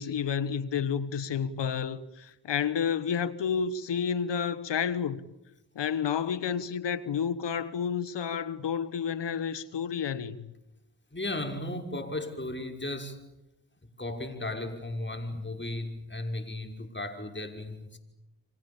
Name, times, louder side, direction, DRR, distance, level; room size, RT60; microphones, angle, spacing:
voice 1, 0.0-5.3 5.7-10.5, left 7 dB, 80° left, 1.5 m, -30 dB
voice 2, 11.1-13.2 14.0-18.0, left 2 dB, 25° left, 6.0 m, -35 dB
30.0 x 25.5 x 7.3 m
supercardioid pair, 40°, 42 cm